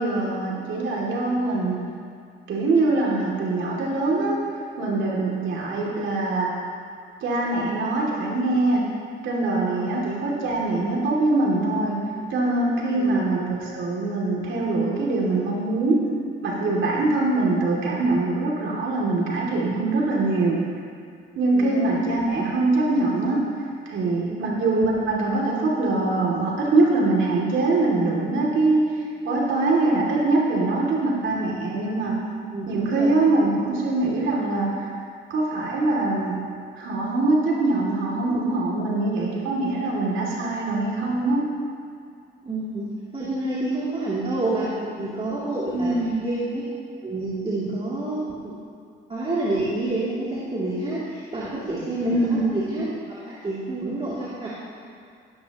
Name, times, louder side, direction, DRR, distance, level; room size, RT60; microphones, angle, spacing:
voice 1, 0.0-1.8 2.5-4.4 4.8-6.5 7.2-8.9 9.2-16.0 16.4-20.6 21.4-23.5 23.9-28.8 29.2-32.2 32.7-34.9 35.3-36.4 36.8-41.5 45.7-46.2 52.0-52.6, right 2 dB, 75° right, -3 dB, 2.8 m, -23 dB
voice 2, 21.5-21.9 24.3-24.6 32.5-33.2 42.4-46.6 47.0-48.6 49.1-52.9 53.2-54.5, right 2 dB, 30° right, -9 dB, 3.0 m, -28 dB
16.5 x 13.0 x 3.0 m, 2.3 s
cardioid pair, 90°, 20 cm